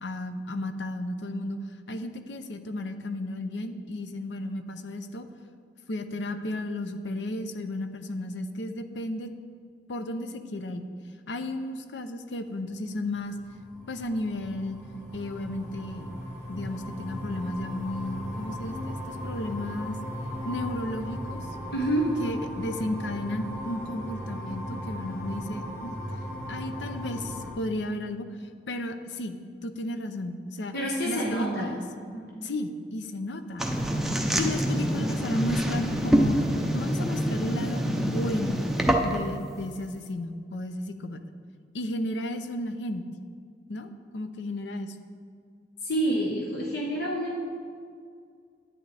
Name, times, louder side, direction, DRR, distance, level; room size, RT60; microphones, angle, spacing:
voice 1, 0.0-1.6 1.9-5.3 5.9-9.3 9.9-10.9 11.3-13.4 13.9-14.8 15.1-16.2 16.5-20.0 20.4-21.4 22.2-26.0 26.5-28.3 28.7-30.7 31.1-31.8 32.4-33.7 34.4-36.4 36.7-38.6 39.0-41.2 41.7-43.1 43.7-45.0, left 1 dB, 85° left, 9 dB, 0.6 m, -33 dB
sound 1, 13.2-27.5, equal, 15° left, 2.0 m, -37 dB
voice 2, 21.7-22.1 30.7-31.7 32.1-32.3 45.8-47.4, right 1 dB, 65° left, -3 dB, 1.2 m, -28 dB
sound 2, 33.6-39.3, equal, ahead, 0.6 m, -26 dB
10.5 x 8.7 x 3.3 m, 2.1 s
head